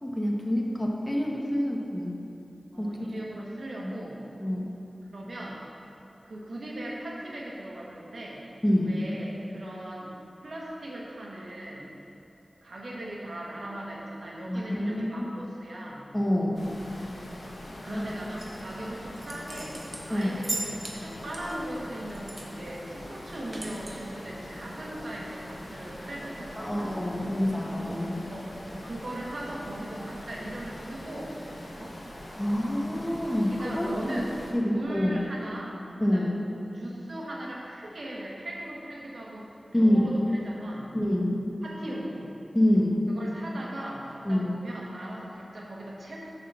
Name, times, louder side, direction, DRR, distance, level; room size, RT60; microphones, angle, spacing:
voice 1, 0.0-2.2 2.8-3.1 3.8-3.9 4.4-4.7 8.6-8.9 14.5-15.3 16.1-16.6 17.9-18.1 20.1-20.4 26.6-28.2 32.3-34.2 34.5-35.2 36.0-36.3 39.7-40.2 40.9-41.3 42.5-43.0 44.2-44.5, left 1 dB, 15° left, -2 dB, 1.3 m, -26 dB
voice 2, 2.7-4.2 5.0-5.6 6.2-8.4 8.8-10.1 10.4-11.9 12.6-16.0 17.8-19.8 20.1-26.9 28.3-28.6 28.8-31.4 31.8-32.0 33.3-34.4 34.6-35.8 36.0-36.3 36.7-40.9 41.6-42.3 43.1-46.2, right 1 dB, 80° right, -3 dB, 1.3 m, -39 dB
sound 1, 16.5-34.5, left 1 dB, 70° left, 1.2 m, -43 dB
sound 2, 18.4-18.7 19.2-21.0 21.3-22.5 22.8-22.9 23.2-23.9, right 1 dB, 50° right, 1.1 m, -37 dB
7.6 x 4.1 x 6.7 m, 2.8 s
cardioid pair, 45°, 0 cm